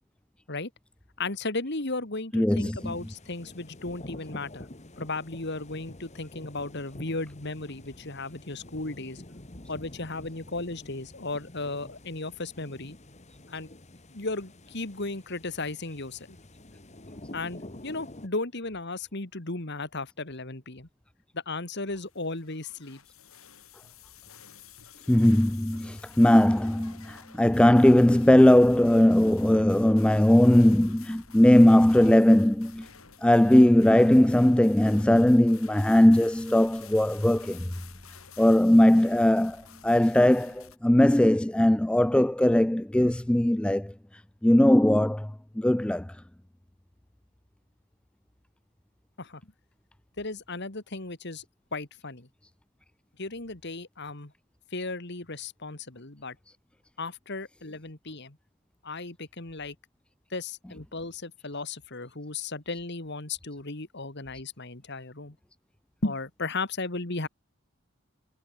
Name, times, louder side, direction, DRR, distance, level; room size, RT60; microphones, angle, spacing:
voice 1, 1.2-4.7 5.0-9.2 9.7-12.9 13.5-13.7 14.1-16.4 17.3-20.9 21.3-23.0 49.2-49.4 50.2-51.4 51.7-52.3 53.2-54.3 54.7-56.4 57.0-58.4 58.8-59.8 60.3-65.4 66.0-67.3, left 3 dB, 55° left, 2.4 m, -35 dB
voice 2, 2.3-2.9 25.1-32.9 33.2-37.6 38.4-39.6 39.8-43.9 44.4-45.3 45.6-46.1, left 1 dB, 5° left, 0.3 m, -19 dB
sound 1, 2.8-18.3, left 1 dB, 35° left, 1.8 m, -48 dB
sound 2, 22.0-40.8, left 7 dB, 85° left, 7.3 m, -51 dB
head